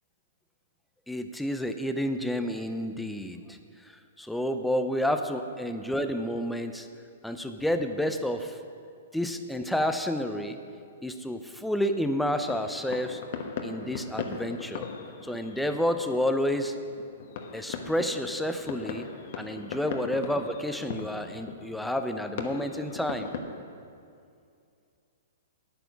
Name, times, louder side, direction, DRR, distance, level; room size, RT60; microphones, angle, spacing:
voice 1, 1.1-3.6 4.2-6.9 7.2-8.6 9.1-10.6 11.0-13.2 13.6-14.9 15.2-16.8 17.5-19.1 19.4-23.3, equal, ahead, 7 dB, 0.6 m, -30 dB
sound 1, 12.5-23.4, left 5 dB, 55° left, 1.2 m, -39 dB
9.7 x 9.1 x 6.1 m, 2.4 s
hypercardioid pair, 130°, 0 cm